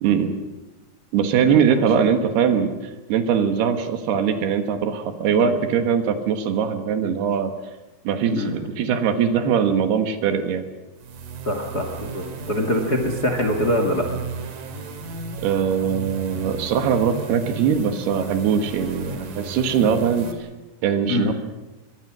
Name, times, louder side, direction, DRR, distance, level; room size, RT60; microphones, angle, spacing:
voice 1, 0.0-0.4 1.1-2.7 3.1-7.5 8.1-10.7 15.4-20.3 20.8-21.3, right 7 dB, 75° right, 8 dB, 3.5 m, -21 dB
voice 2, 1.4-1.9 5.3-5.5 8.3-8.5 11.4-14.1 18.8-18.9 21.1-21.3, left 1 dB, 35° left, 4 dB, 1.7 m, -24 dB
sound 1, 11.0-20.3, right 4 dB, 60° right, 3.7 m, -35 dB
23.5 x 23.0 x 6.2 m, 1.1 s
omnidirectional pair, 4.8 m